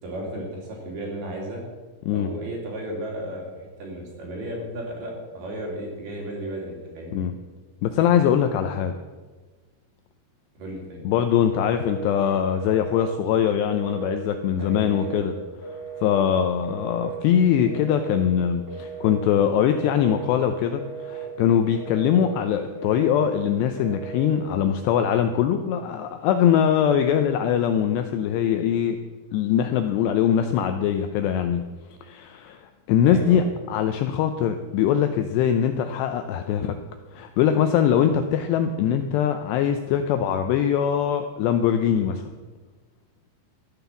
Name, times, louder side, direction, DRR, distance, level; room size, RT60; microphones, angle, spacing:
voice 1, 0.0-1.6 2.1-7.2 10.6-11.0 14.6-15.3 33.0-33.4, right 1 dB, 55° right, -1 dB, 4.5 m, -34 dB
voice 2, 7.8-8.9 11.1-15.3 16.0-29.0 29.3-31.6 32.0-32.6 32.9-36.8 37.1-42.4, left 9 dB, 80° left, 7 dB, 2.5 m, -22 dB
Telephone, 11.5-12.1 12.5-13.1 13.6-14.1 14.6-15.2 15.6-16.2 16.6-17.2 17.6-18.2 18.7-19.2 19.7-20.3 20.7-21.3 21.7-22.3 22.7-23.3 23.7-24.3, right 6 dB, 20° right, 0.6 m, -36 dB
14.0 x 9.4 x 7.0 m, 1.3 s
omnidirectional pair, 5.6 m